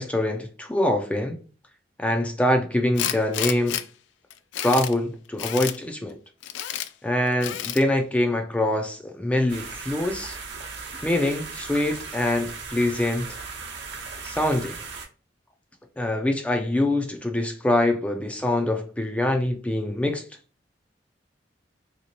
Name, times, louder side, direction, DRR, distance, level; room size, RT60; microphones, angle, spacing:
voice 1, 0.0-1.4 2.0-3.8 4.6-6.2 7.0-10.4 11.0-13.3 14.2-14.8 16.0-20.2, left 1 dB, 5° left, 0.3 m, -24 dB
Tools, 3.0-3.8 4.3-4.9 5.4-5.8 6.4-6.9 7.4-7.8, left 11 dB, 90° left, 0.3 m, -30 dB
sound 1, 9.5-15.0, right 4 dB, 80° right, 0.8 m, -37 dB
2.9 x 2.8 x 2.8 m
head